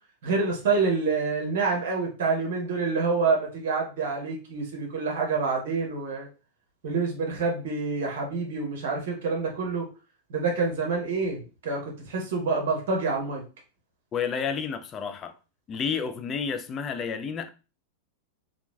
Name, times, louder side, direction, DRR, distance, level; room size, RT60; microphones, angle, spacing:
voice 1, 0.2-6.3 6.8-9.9 10.3-13.4, right 4 dB, 55° right, 0.9 m, -27 dB
voice 2, 14.1-15.3 15.7-17.5, left 6 dB, 25° left, 0.3 m, -30 dB
2.9 x 2.3 x 2.2 m
figure-of-eight pair, 90°, 0 cm